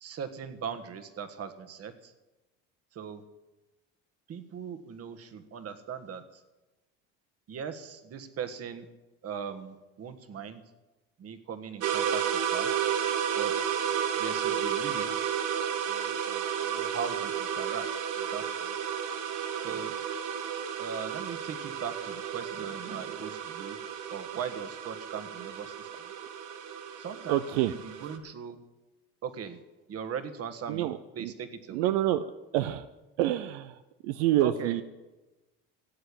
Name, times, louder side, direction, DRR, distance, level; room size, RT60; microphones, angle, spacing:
voice 1, 0.0-2.1 2.9-3.2 4.3-6.2 7.5-8.9 9.2-10.6 11.2-12.2 12.5-12.7 13.4-13.7 14.2-15.4 15.9-17.8 18.3-18.7 19.6-19.9 20.8-23.8 24.1-25.9 27.0-27.8 28.0-28.6 29.2-29.6 29.9-30.9 31.2-31.9 34.4-34.8, right 7 dB, 45° right, 9 dB, 1.6 m, -39 dB
sound 1, 11.8-28.2, right 8 dB, 65° right, 1.7 m, -32 dB
voice 2, 27.3-27.7 28.0-28.1 30.7-31.3 31.7-32.2 32.5-32.9 33.2-34.8, right 13 dB, 85° right, 11 dB, 0.7 m, -27 dB
15.5 x 8.0 x 8.5 m, 1.1 s
supercardioid pair, 95°, 33 cm